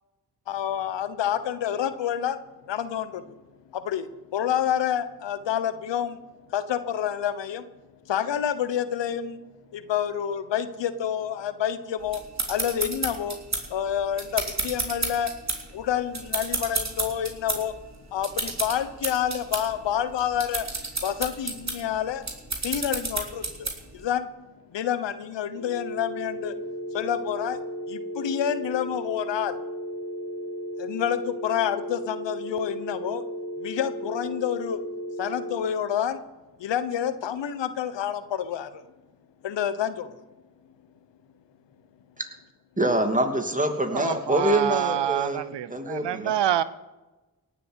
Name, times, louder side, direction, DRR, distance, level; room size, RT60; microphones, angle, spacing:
voice 1, 0.5-2.4 2.7-3.3 3.7-6.2 6.5-7.7 8.1-9.4 9.7-12.2 12.5-13.4 13.7-15.3 15.7-17.7 18.1-20.7 21.0-22.2 22.6-24.3 24.7-26.6 26.9-27.6 27.9-29.6 30.8-33.2 33.6-34.8 35.2-36.2 36.6-38.9 39.4-40.1, left 9 dB, 80° left, 12 dB, 1.1 m, -28 dB
sound 1, 12.1-24.0, right 3 dB, 40° right, 3.4 m, -32 dB
sound 2, 25.6-35.6, equal, 60° left, 3.3 m, -35 dB
voice 2, 42.8-45.4 45.7-46.3, right 1 dB, 20° right, 5 dB, 2.6 m, -25 dB
voice 3, 43.9-46.6, right 11 dB, 75° right, 16 dB, 0.7 m, -27 dB
17.5 x 7.4 x 8.2 m, 1.1 s
supercardioid pair, 40°, 43 cm